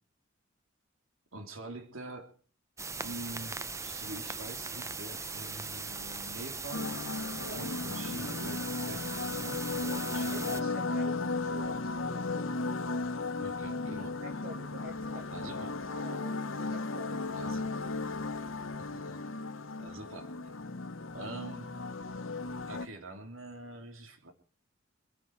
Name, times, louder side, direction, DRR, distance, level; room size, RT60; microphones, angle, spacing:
voice 1, 1.3-2.4 3.0-7.0 7.5-10.8 13.4-14.2 15.3-15.8 17.3-17.9 18.9-19.2 19.8-20.4 21.1-21.7 22.6-24.3, right 2 dB, 80° right, 6 dB, 3.3 m, -45 dB
sound 1, 2.8-10.6, right 4 dB, 15° right, 0.7 m, -39 dB
sound 2, 6.7-22.9, left 3 dB, 75° left, 1.3 m, -35 dB
voice 2, 7.4-7.7 10.0-12.7 14.2-15.5 15.9-17.5, right 2 dB, 50° right, 3 dB, 2.0 m, -47 dB
26.0 x 9.9 x 4.8 m, 0.41 s
head